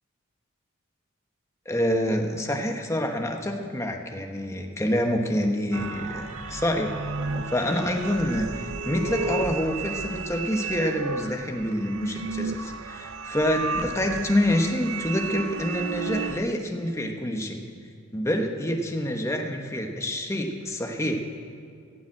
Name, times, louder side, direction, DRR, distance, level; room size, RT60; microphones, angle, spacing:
voice 1, 1.7-6.9 7.3-17.6 18.1-21.1, left 1 dB, 15° left, 3 dB, 1.1 m, -27 dB
sound 1, 5.7-16.4, right 4 dB, 80° right, 0.6 m, -33 dB
15.5 x 7.2 x 7.6 m, 2.4 s
head